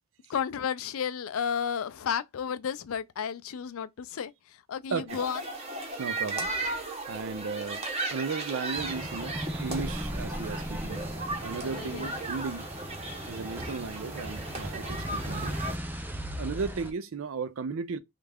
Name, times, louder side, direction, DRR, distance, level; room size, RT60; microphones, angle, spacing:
voice 1, 0.3-4.3 4.7-5.4 11.6-12.1, left 7 dB, 75° left, 0.4 m, -32 dB
voice 2, 4.9-5.2 6.0-6.5 7.1-7.8 8.1-11.1 11.4-12.7 13.3-15.6 16.4-18.0, right 5 dB, 65° right, 0.5 m, -35 dB
sound 1, 5.1-15.8, right 2 dB, 30° right, 0.8 m, -36 dB
sound 2, 8.7-16.9, equal, 10° right, 0.4 m, -37 dB
3.3 x 2.4 x 3.4 m
head